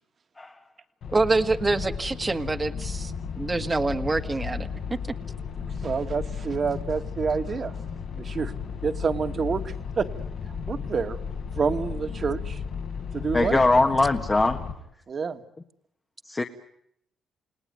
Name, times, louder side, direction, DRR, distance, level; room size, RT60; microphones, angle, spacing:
sound 1, 1.0-14.7, left 6 dB, 65° left, 4.8 m, -34 dB
voice 1, 1.1-4.7, right 3 dB, 20° right, 9 dB, 1.7 m, -26 dB
voice 2, 5.8-7.7 8.2-8.5 8.8-10.1 10.7-11.2 11.6-12.6 13.1-13.6 15.1-15.4, right 5 dB, 45° right, 8 dB, 2.0 m, -28 dB
voice 3, 13.3-14.6 16.2-16.4, left 2 dB, 20° left, 4 dB, 1.6 m, -21 dB
29.0 x 19.0 x 9.3 m, 0.74 s
cardioid pair, 90°, 0 cm